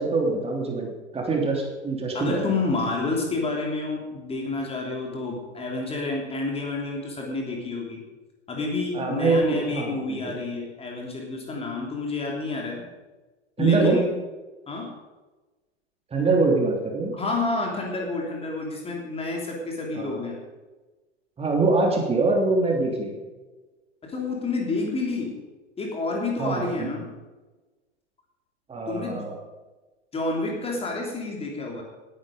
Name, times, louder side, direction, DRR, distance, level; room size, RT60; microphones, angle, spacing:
voice 1, 0.0-2.5 8.9-10.2 13.6-14.0 16.1-17.2 19.9-20.2 21.4-23.2 26.4-26.9 28.7-29.4, right 3 dB, 15° right, 0 dB, 3.3 m, -24 dB
voice 2, 2.1-8.0 8.5-12.8 13.6-14.1 14.7-14.9 17.1-20.4 24.0-25.4 25.8-27.1 28.9-29.2 30.1-31.8, left 3 dB, 15° left, 0 dB, 3.1 m, -29 dB
19.5 x 10.0 x 5.2 m, 1.2 s
figure-of-eight pair, 95°, 35 cm